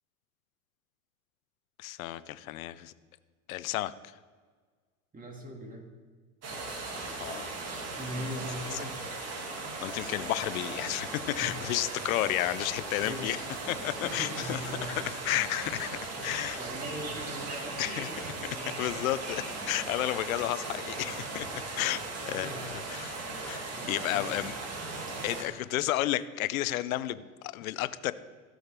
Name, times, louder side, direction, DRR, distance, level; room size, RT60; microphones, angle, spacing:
voice 1, 1.8-2.9 3.5-3.9 7.2-7.5 8.7-8.8 9.8-13.4 13.7-14.6 14.9-16.6 17.8-18.1 18.8-23.2 23.5-24.5 25.2-28.1, left 15 dB, 75° left, 16 dB, 0.7 m, -32 dB
voice 2, 5.1-5.9 6.6-6.7 7.6-9.0 11.4-11.6 13.0-15.1 15.8-16.3 16.6-19.0 21.7-22.7 23.3-24.5 25.1-25.5, equal, 20° right, 1 dB, 2.1 m, -42 dB
sound 1, 6.4-25.4, right 3 dB, 35° right, 2.1 m, -38 dB
16.5 x 6.4 x 3.4 m, 1.5 s
hypercardioid pair, 85°, 41 cm